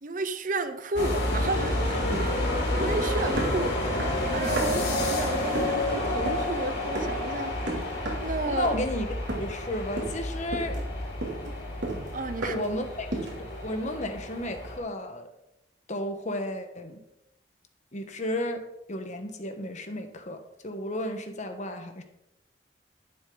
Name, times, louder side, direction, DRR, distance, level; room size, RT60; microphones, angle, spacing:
voice 1, 0.0-3.9 4.3-7.6 8.2-8.8 12.1-12.7, right 2 dB, 45° right, 0.7 m, -32 dB
sound 1, 0.9-14.8, left 1 dB, 60° left, 4.0 m, -30 dB
sound 2, 2.1-3.1 3.4-4.9 5.5-5.8 6.3-6.5 6.9-7.3 7.7-8.3 8.6-9.0 9.3-9.7 10.0-10.2 10.5-12.8 13.1-13.5, right 2 dB, 75° right, 2.9 m, -33 dB
voice 2, 8.5-10.8 12.5-13.3 13.6-15.3 15.9-17.0 17.9-18.6 18.9-20.4 20.6-22.0, left 1 dB, 40° left, 1.3 m, -33 dB
11.0 x 9.3 x 3.9 m
head